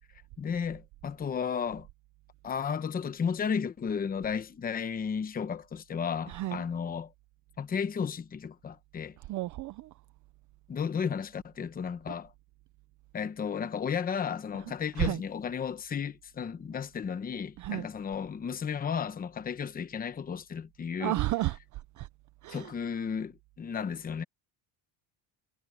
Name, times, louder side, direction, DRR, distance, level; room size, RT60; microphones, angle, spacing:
voice 1, 0.4-1.9 2.4-7.1 7.6-9.2 10.7-12.3 13.1-21.2 22.5-24.2, left 6 dB, 20° left, 0.9 m, -33 dB
voice 2, 6.3-6.6 9.3-9.9 15.0-15.2 17.6-17.9 21.0-22.1 22.4-22.7, right 17 dB, 40° right, 0.4 m, -32 dB
cardioid pair, 165°, 50 cm